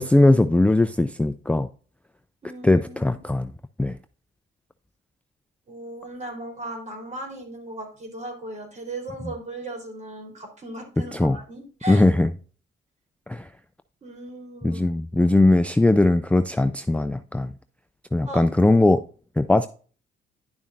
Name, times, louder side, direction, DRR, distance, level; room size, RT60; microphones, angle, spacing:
voice 1, 0.0-1.7 2.6-3.5 3.8-4.0 11.1-11.4 11.9-12.3 13.3-13.5 14.6-17.5 18.1-19.0 19.4-19.7, left 2 dB, 5° left, 0.4 m, -19 dB
voice 2, 2.4-3.2 5.7-12.0 14.0-14.8 18.2-18.4, right 1 dB, 35° right, 3.8 m, -37 dB
10.5 x 7.1 x 2.6 m
cardioid pair, 90°, 20 cm